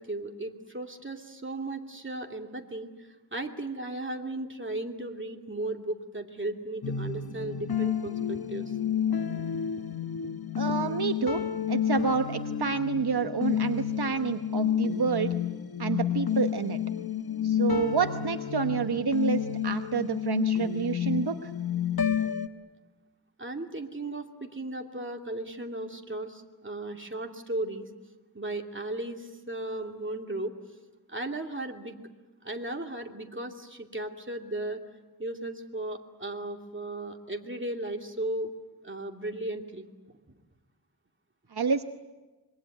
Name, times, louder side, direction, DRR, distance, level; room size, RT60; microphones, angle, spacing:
voice 1, 0.0-8.8 23.4-27.9 28.3-30.5 31.1-31.9 32.4-34.8 35.2-38.5 38.8-39.9, right 2 dB, 30° right, 3 dB, 2.7 m, -36 dB
sound 1, 6.8-22.5, left 8 dB, 65° left, 1.2 m, -30 dB
voice 2, 10.6-15.3 15.8-16.8 17.4-21.5 41.5-41.8, right 5 dB, 75° right, 8 dB, 1.0 m, -29 dB
25.5 x 22.5 x 9.3 m, 1.2 s
wide cardioid pair, 65°, 39 cm